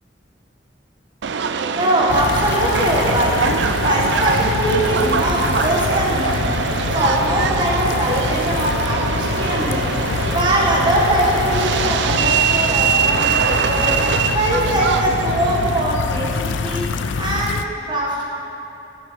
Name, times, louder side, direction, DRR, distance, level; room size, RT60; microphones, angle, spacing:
Subway metro underground, 1.2-15.8, right 6 dB, 70° right, 0.4 m, -22 dB
voice 1, 1.7-3.5 3.8-6.5 6.8-10.0 10.3-14.0 14.3-16.8 17.2-18.2, right 1 dB, 25° right, -3 dB, 1.6 m, -21 dB
sound 1, 2.1-17.6, left 4 dB, 80° left, 0.4 m, -25 dB
11.0 x 6.2 x 5.1 m, 2.9 s
head